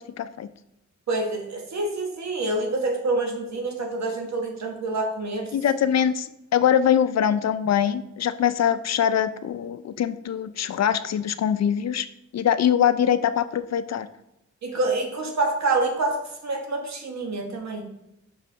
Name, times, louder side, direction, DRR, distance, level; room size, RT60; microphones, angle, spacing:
voice 1, 0.2-0.5 5.5-12.1 12.3-14.1, left 9 dB, 60° left, 13 dB, 0.5 m, -23 dB
voice 2, 1.1-5.6 14.6-17.9, right 2 dB, 65° right, 2 dB, 1.4 m, -27 dB
5.7 x 4.9 x 3.4 m, 0.86 s
cardioid pair, 60°, 30 cm